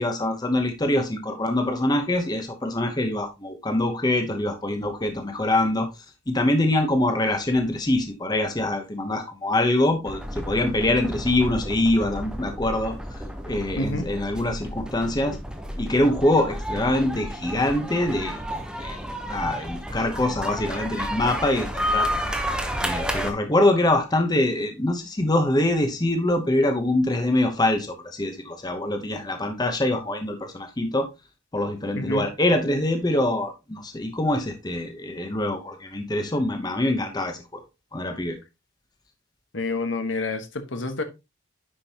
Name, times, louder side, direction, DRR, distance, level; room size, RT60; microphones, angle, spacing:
voice 1, 0.0-5.9 6.3-13.2 13.5-15.4 15.8-18.4 18.8-19.0 19.3-22.1 22.8-31.1 31.5-37.6 37.9-38.4, left 1 dB, 20° left, 0.9 m, -24 dB
sound 1, 10.1-23.3, equal, 5° right, 0.9 m, -31 dB
voice 2, 13.8-14.1 31.9-32.3 39.5-41.0, left 2 dB, 65° left, 1.2 m, -28 dB
9.9 x 5.3 x 2.9 m
head